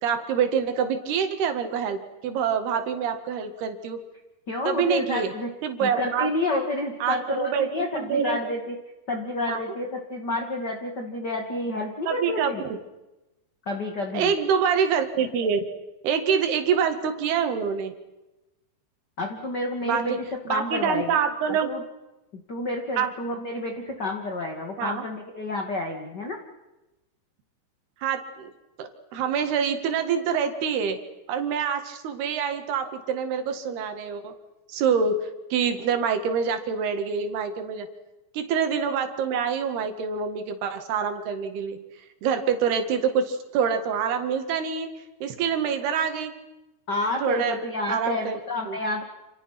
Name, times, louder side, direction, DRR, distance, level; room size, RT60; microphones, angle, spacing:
voice 1, 0.0-4.0 4.7-5.3 5.6-6.3 7.0-8.4 9.5-9.6 12.1-12.8 14.1-15.6 16.0-17.9 19.8-20.0 20.5-21.7 23.0-23.1 24.8-25.1 28.0-28.5 28.8-31.0 31.3-34.3 34.7-37.9 38.3-41.8 42.2-44.9 45.2-46.3 47.2-47.6 47.9-48.4 48.7-48.8, right 7 dB, 90° right, 7 dB, 4.0 m, -26 dB
voice 2, 4.5-5.5 5.8-8.7 9.1-12.6 13.7-14.3 19.2-20.2 20.5-21.2 21.7-21.8 22.3-26.4 46.9-49.0, left 2 dB, 35° left, 3 dB, 2.2 m, -29 dB
28.5 x 28.0 x 6.0 m, 1.0 s
omnidirectional pair, 4.4 m